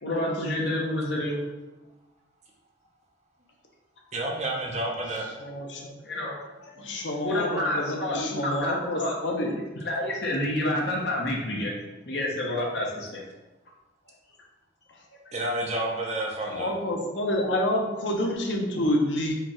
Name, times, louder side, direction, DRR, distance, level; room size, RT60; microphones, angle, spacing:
voice 1, 0.0-1.4 6.0-6.7 7.2-9.1 9.8-11.7 12.1-13.2 15.3-15.4, left 1 dB, 65° left, -2 dB, 1.1 m, -29 dB
voice 2, 4.1-5.3 15.3-16.7, right 1 dB, 40° right, -1 dB, 0.8 m, -30 dB
voice 3, 5.4-5.9 6.8-9.6 16.5-19.3, left 1 dB, 80° left, 1 dB, 0.8 m, -28 dB
5.0 x 2.4 x 4.3 m, 1.1 s
head